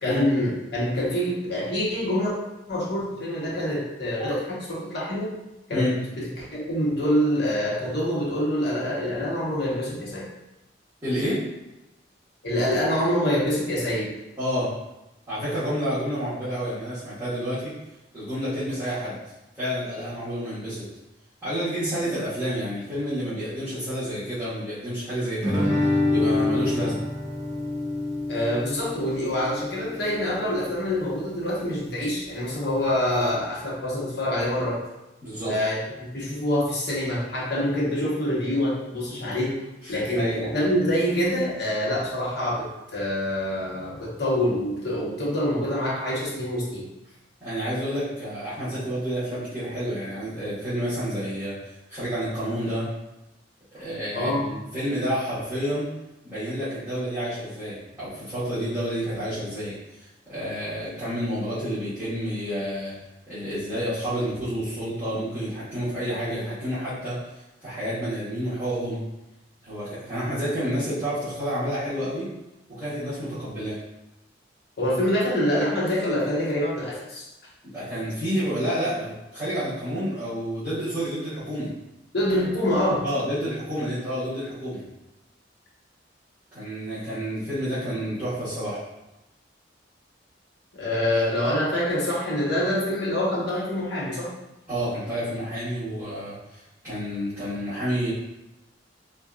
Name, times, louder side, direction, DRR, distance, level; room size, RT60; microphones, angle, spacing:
voice 1, 0.0-2.3 2.7-5.3 5.7-10.3 12.4-14.1 28.3-34.8 35.4-39.6 39.9-42.7 42.9-46.9 54.1-54.5 74.8-77.2 82.1-83.0 90.7-94.3, left 1 dB, 65° left, -5 dB, 1.0 m, -26 dB
voice 2, 11.0-11.4 14.4-14.7 15.3-17.7 18.1-19.2 19.5-20.8 21.4-25.7 26.1-27.0 35.2-35.5 39.8-40.4 47.4-51.5 51.9-52.9 53.7-55.9 56.2-62.9 63.3-67.2 67.6-69.0 69.6-72.3 72.7-73.8 77.6-81.7 83.0-84.8 86.5-88.8 94.7-98.1, equal, 20° right, -17 dB, 1.4 m, -29 dB
Guitar, 25.4-30.5, left 2 dB, 40° right, 0.6 m, -26 dB
3.9 x 2.5 x 2.4 m, 0.96 s
head